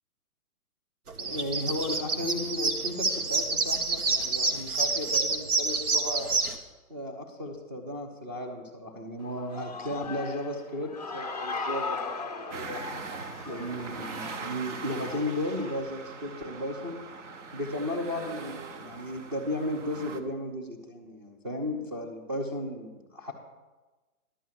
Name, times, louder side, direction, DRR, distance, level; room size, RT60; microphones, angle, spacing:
sound 1, 1.1-6.5, right 4 dB, 90° right, 1.5 m, -28 dB
voice 1, 1.2-6.3 6.9-12.9 13.5-17.0 17.5-23.3, left 1 dB, 20° right, 1 dB, 0.8 m, -35 dB
Human voice / Cheering, 9.2-15.8, left 4 dB, 30° left, 0.3 m, -38 dB
sound 2, 12.5-20.2, right 4 dB, 55° right, 1.0 m, -41 dB
11.0 x 5.4 x 8.1 m, 1.2 s
hypercardioid pair, 155°, 43 cm